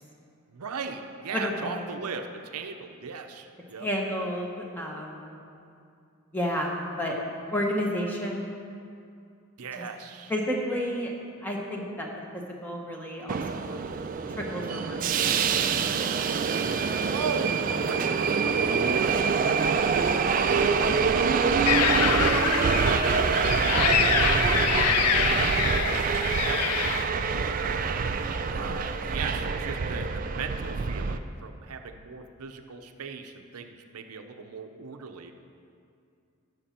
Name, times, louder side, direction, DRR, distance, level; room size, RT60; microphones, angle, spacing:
voice 1, 0.5-3.9 9.6-10.3 17.1-20.2 20.5-23.4 24.0-27.0 27.3-27.6 28.5-35.3, right 5 dB, 85° right, 6 dB, 0.6 m, -39 dB
voice 2, 1.3-2.0 3.8-5.4 6.3-7.2 7.5-8.5 9.8-9.9 10.3-11.1 11.4-12.1 12.3-13.8 14.4-16.2, equal, 10° left, -1 dB, 1.0 m, -32 dB
Subway metro underground, 13.3-31.2, right 5 dB, 35° right, 0.3 m, -25 dB
sound 1, 21.7-27.0, left 9 dB, 85° left, 0.4 m, -26 dB
12.5 x 6.0 x 4.3 m, 2.5 s
head